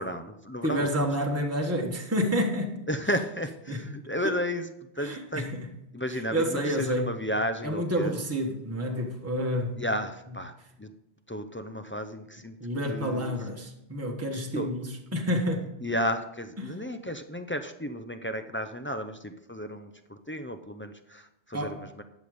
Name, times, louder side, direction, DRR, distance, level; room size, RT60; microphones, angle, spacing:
voice 1, 0.0-0.9 1.3-1.5 2.9-4.7 5.0-5.6 5.9-8.1 9.8-10.5 10.8-10.9 11.3-12.5 12.8-13.3 14.5-14.7 15.8-22.0, equal, 20° left, 0.3 m, -33 dB
voice 2, 0.6-2.7 3.7-3.8 4.2-4.3 5.0-5.7 6.1-7.1 7.6-9.8 12.6-15.7 16.6-16.7 21.5-21.8, equal, 15° right, 1.4 m, -29 dB
12.0 x 7.1 x 5.0 m
omnidirectional pair, 1.2 m